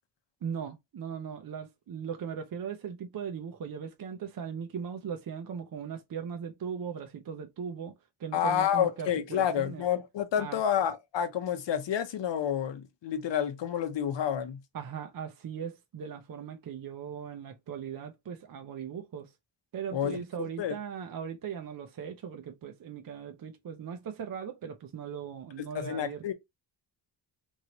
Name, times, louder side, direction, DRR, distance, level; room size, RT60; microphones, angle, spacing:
voice 1, 0.4-7.9 8.2-9.8 10.4-10.6 14.7-19.3 19.7-26.3, right 7 dB, 45° right, 0.6 m, -39 dB
voice 2, 8.3-14.6 19.9-20.7 25.7-26.3, left 9 dB, 60° left, 0.8 m, -29 dB
3.1 x 2.7 x 2.8 m
cardioid pair, 100°, 50 cm